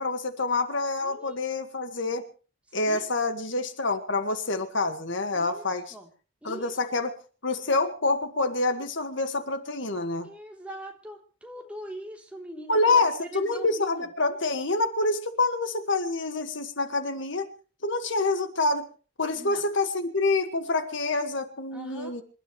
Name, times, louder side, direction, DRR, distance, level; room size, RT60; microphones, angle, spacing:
voice 1, 0.0-2.2 2.7-5.8 6.4-7.2 7.4-10.3 12.7-17.5 17.8-18.9 19.2-22.2, left 3 dB, 60° left, 8 dB, 1.8 m, -27 dB
voice 2, 1.0-1.4 2.9-3.0 5.3-6.1 6.4-6.7 10.2-14.1 19.4-19.6 21.7-22.1, equal, 5° right, 1 dB, 3.4 m, -42 dB
28.0 x 13.0 x 3.2 m, 0.37 s
head